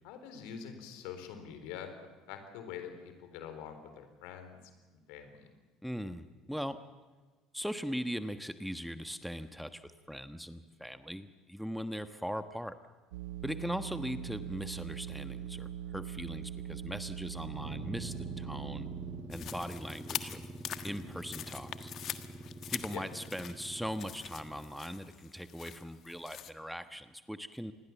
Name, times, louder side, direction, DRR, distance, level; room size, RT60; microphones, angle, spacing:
voice 1, 0.0-2.0 2.3-4.6 4.9-5.5 13.9-14.2 22.9-23.0, left 8 dB, 65° left, 8 dB, 3.9 m, -45 dB
voice 2, 5.8-6.8 7.5-12.7 13.4-18.9 19.3-20.4 20.8-21.9 22.7-27.7, equal, ahead, 10 dB, 1.3 m, -40 dB
sound 1, 13.1-19.6, right 10 dB, 75° right, 0.9 m, -42 dB
sound 2, 17.5-24.8, right 1 dB, 20° right, 5.1 m, -46 dB
sound 3, 19.3-26.5, left 10 dB, 50° left, 1.5 m, -44 dB
27.0 x 21.0 x 7.2 m, 1.3 s
hypercardioid pair, 65°, 0 cm